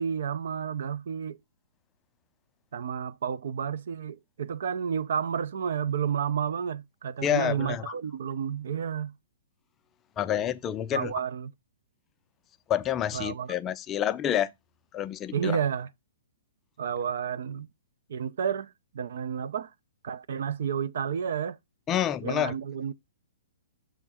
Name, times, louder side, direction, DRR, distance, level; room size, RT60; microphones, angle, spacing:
voice 1, 0.0-1.4 2.7-9.1 10.9-11.5 13.1-13.5 15.3-15.9 16.8-17.7 18.1-19.7 20.0-21.6 22.2-22.9, right 7 dB, 70° right, 0.5 m, -31 dB
voice 2, 7.2-7.9 10.2-11.1 12.7-14.5 14.9-15.6 21.9-22.5, left 10 dB, 20° left, 0.4 m, -28 dB
6.4 x 3.4 x 4.8 m
hypercardioid pair, 140°, 0 cm